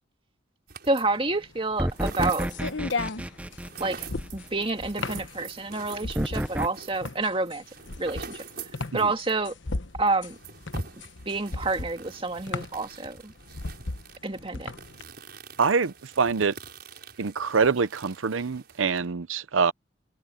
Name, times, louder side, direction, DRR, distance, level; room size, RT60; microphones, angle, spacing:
sound 1, 0.7-1.3 1.6-9.4 9.7-9.8 10.1-19.1, right 4 dB, 55° right, 6.6 m, -44 dB
voice 1, 0.9-2.5 3.8-4.1 4.3-7.6 8.0-8.4 8.9-9.5 10.0-10.4 11.3-13.3 14.2-14.7, right 3 dB, 30° right, 2.1 m, -28 dB
sound 2, 1.1-15.0, left 3 dB, 70° left, 1.2 m, -36 dB
sound 3, 1.8-4.7 6.1-6.7, equal, 5° right, 0.9 m, -30 dB
voice 2, 15.6-16.6 17.2-19.7, right 5 dB, 90° right, 0.7 m, -25 dB
head